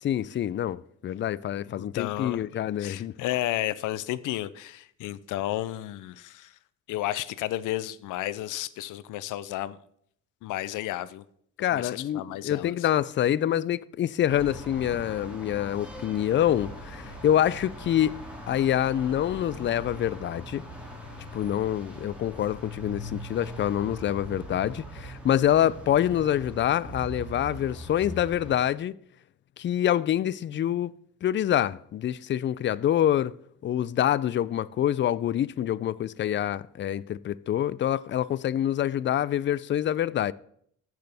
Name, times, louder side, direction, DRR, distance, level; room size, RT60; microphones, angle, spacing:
voice 1, 0.0-3.1 11.6-18.2 18.5-20.6 21.3-29.0 29.6-30.9 31.2-33.3 33.6-40.3, left 11 dB, 40° left, 0.4 m, -26 dB
voice 2, 1.8-2.4 2.8-6.5 6.9-9.8 10.4-11.2 11.7-12.7, left 14 dB, 90° left, 0.6 m, -32 dB
sound 1, 14.3-28.5, equal, 5° right, 2.7 m, -41 dB
15.0 x 6.1 x 3.5 m
cardioid pair, 90°, 30 cm